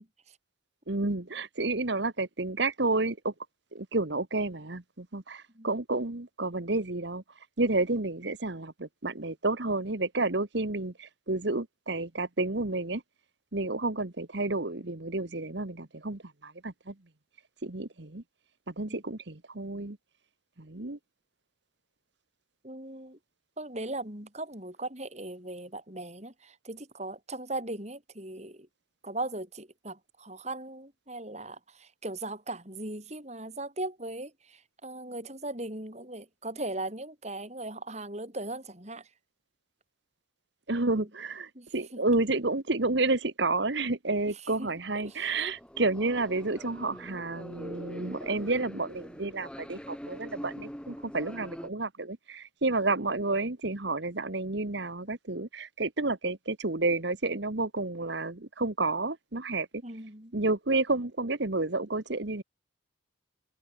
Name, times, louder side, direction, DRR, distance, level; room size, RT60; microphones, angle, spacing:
voice 1, 0.9-3.3 3.7-7.2 7.6-13.0 13.5-16.9 17.6-18.2 18.7-20.0 20.6-21.0 40.7-59.8 60.3-62.4, right 2 dB, 60° right, 1.4 m, -30 dB
voice 2, 22.6-23.2 23.6-28.7 29.0-39.1 40.9-41.1 41.6-41.7 41.9-42.0 44.6-44.7 45.0-45.5 59.8-60.4, right 2 dB, 35° right, 5.2 m, -38 dB
sound 1, 44.8-51.7, equal, 5° left, 2.0 m, -44 dB
head